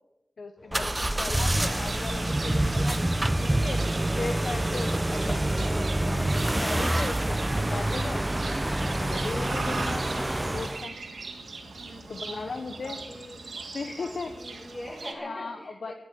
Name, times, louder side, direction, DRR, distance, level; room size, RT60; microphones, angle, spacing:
voice 1, 0.4-3.1 3.4-3.8 4.2-8.3 8.8-11.0 12.1-13.0 13.7-14.3 15.1-15.9, left 3 dB, 70° left, 7 dB, 1.1 m, -37 dB
sound 1, 0.6-14.9, left 1 dB, 45° left, 6.2 m, -53 dB
sound 2, 0.7-10.9, right 1 dB, 20° right, 0.8 m, -27 dB
voice 2, 1.0-1.4 12.2-13.4 14.0-15.9, left 1 dB, 30° left, -1 dB, 7.1 m, -43 dB
Livestock farm animals working animals, 1.4-15.1, right 3 dB, 80° right, 2.9 m, -40 dB
14.5 x 9.7 x 8.9 m, 0.94 s
wide cardioid pair, 65°, 0 cm